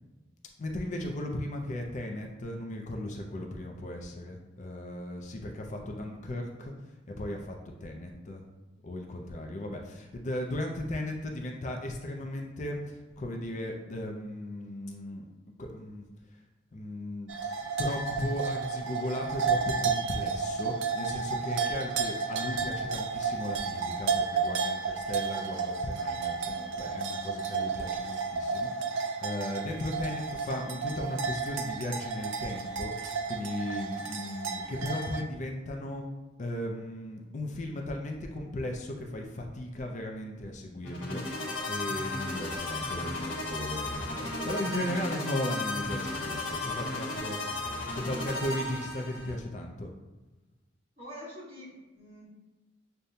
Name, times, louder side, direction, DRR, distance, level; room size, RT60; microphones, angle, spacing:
voice 1, 0.6-6.7 7.1-7.6 7.8-8.4 8.8-15.3 15.6-16.0 16.7-17.3 17.8-36.1 36.4-47.4 47.9-49.9, left 1 dB, 40° left, 2 dB, 0.4 m, -36 dB
sound 1, 17.3-35.2, right 5 dB, 85° right, 0.4 m, -32 dB
sound 2, 40.8-49.3, left 2 dB, 85° left, 0.9 m, -35 dB
voice 2, 51.0-52.3, equal, 30° right, -7 dB, 1.5 m, -45 dB
6.5 x 2.2 x 2.7 m, 1.2 s
head